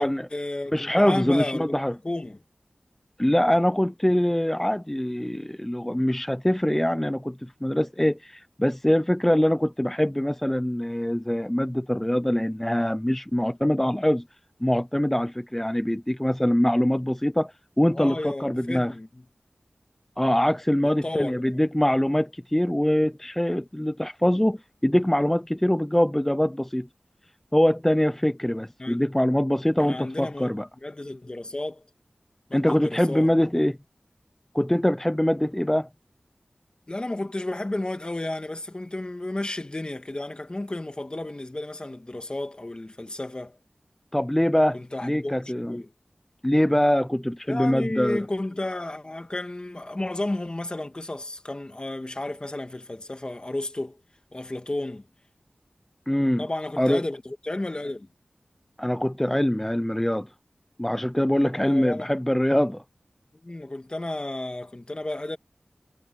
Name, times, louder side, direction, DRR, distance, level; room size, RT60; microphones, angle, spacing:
voice 1, 0.0-1.8 2.0-2.4 17.9-19.2 21.0-21.6 28.8-29.0 29.8-31.8 32.5-33.3 36.9-43.6 44.7-45.9 47.5-54.0 54.3-55.0 56.4-58.1 61.5-62.1 63.3-65.4, left 2 dB, 35° left, 2.4 m, -32 dB
voice 2, 0.7-1.9 3.2-14.2 14.6-18.9 20.2-26.9 27.5-30.7 32.5-33.8 34.5-35.9 44.1-45.8 46.4-48.2 56.1-56.4 56.8-57.0 58.8-60.3 60.8-62.8, left 1 dB, 10° left, 0.6 m, -23 dB
wide cardioid pair, 50°, 3 cm